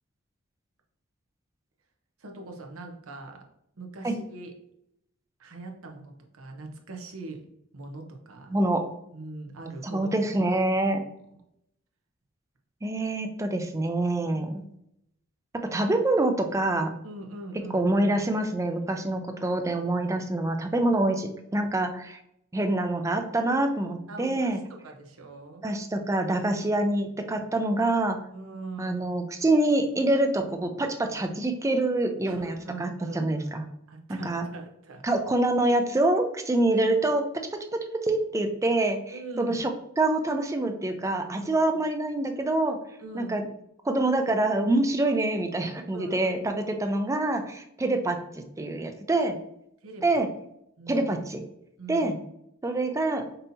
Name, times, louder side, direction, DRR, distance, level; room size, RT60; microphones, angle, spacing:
voice 1, 2.2-3.4 3.8-4.5 5.4-7.5 7.7-8.5 9.1-10.1 10.4-10.6 14.2-14.5 17.0-17.9 24.1-24.5 24.8-25.6 28.3-29.0 32.2-33.4 33.9-35.0 36.6-36.7 39.1-39.6 41.4-41.7 43.0-43.5 45.9-46.4 49.8-50.0 50.8-51.1 51.8-52.2, right 2 dB, 85° right, 3 dB, 0.8 m, -41 dB
voice 2, 8.5-8.8 9.8-11.0 12.8-14.6 15.6-17.0 17.7-22.2 22.5-24.6 25.6-28.2 28.8-32.5 32.8-33.7 34.1-34.5 35.0-37.2 37.7-39.7 40.0-42.8 43.1-43.4 43.8-49.4 50.0-50.3 50.9-51.5 51.9-52.2 52.6-53.2, right 2 dB, 15° right, 6 dB, 0.4 m, -26 dB
5.4 x 2.7 x 2.7 m, 0.77 s
head